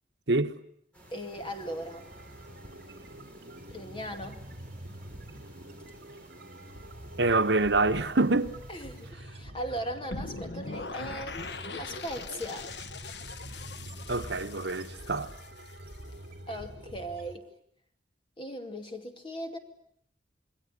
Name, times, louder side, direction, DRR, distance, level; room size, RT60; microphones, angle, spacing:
sound 1, 0.9-9.1, right 1 dB, 5° left, 7.8 m, -56 dB
voice 1, 1.1-2.0 3.7-4.4 8.7-12.7 16.5-17.5 18.4-19.6, equal, 25° left, 2.4 m, -38 dB
sound 2, 1.3-17.4, right 1 dB, 55° right, 2.5 m, -46 dB
voice 2, 7.2-8.5 14.1-15.3, right 2 dB, 70° right, 1.2 m, -26 dB
sound 3, 10.1-16.1, left 3 dB, 65° left, 1.1 m, -41 dB
27.5 x 21.5 x 9.9 m
head